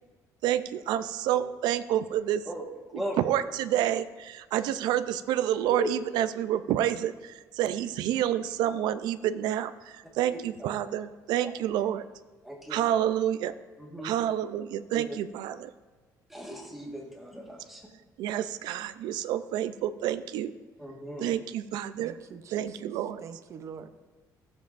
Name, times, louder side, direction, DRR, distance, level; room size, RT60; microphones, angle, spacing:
voice 1, 0.4-2.4 3.2-12.0 12.7-13.5 14.0-15.7 18.2-20.5 21.2-22.1 22.5-23.2, right 11 dB, 85° right, 12 dB, 0.4 m, -29 dB
voice 2, 2.4-3.2 5.7-5.9 10.6-10.7 11.4-11.5 12.4-12.8 13.8-14.2 14.9-15.0 16.3-17.9 20.8-21.3, equal, 5° right, 0 dB, 1.5 m, -38 dB
voice 3, 22.0-22.9 23.2-23.9, right 6 dB, 45° right, 9 dB, 0.6 m, -44 dB
16.5 x 7.3 x 2.5 m, 1.3 s
cardioid pair, 130°, 7 cm